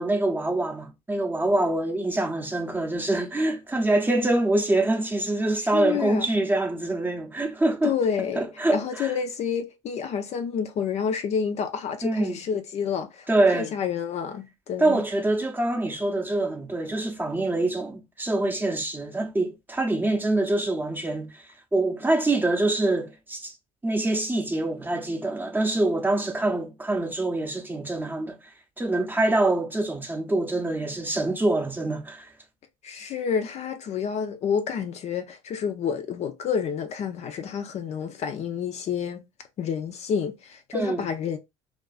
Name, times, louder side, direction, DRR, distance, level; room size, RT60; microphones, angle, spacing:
voice 1, 0.0-7.9 8.4-9.1 12.0-12.4 13.3-13.7 14.8-21.4 21.7-23.5 23.8-28.4 28.8-32.3 40.7-41.1, right 2 dB, 10° right, 0.6 m, -25 dB
voice 2, 5.7-6.3 7.8-13.3 13.5-15.1 32.8-39.2 39.6-41.4, left 7 dB, 40° left, 0.5 m, -29 dB
2.4 x 2.3 x 2.3 m
hypercardioid pair, 75°, 17 cm